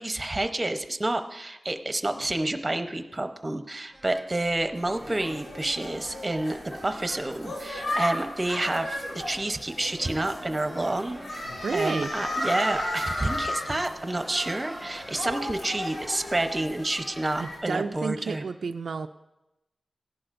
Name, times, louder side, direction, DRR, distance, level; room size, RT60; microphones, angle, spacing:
voice 1, 0.0-18.4, right 2 dB, 25° right, 7 dB, 0.8 m, -29 dB
sound 1, 3.9-15.3, right 1 dB, 5° right, 1.4 m, -46 dB
sound 2, 4.7-17.6, left 1 dB, 80° left, 4.1 m, -35 dB
voice 2, 11.6-12.1 17.4-19.1, right 5 dB, 75° right, 7 dB, 0.3 m, -31 dB
16.5 x 11.0 x 2.6 m, 0.98 s
cardioid pair, 60°, 0 cm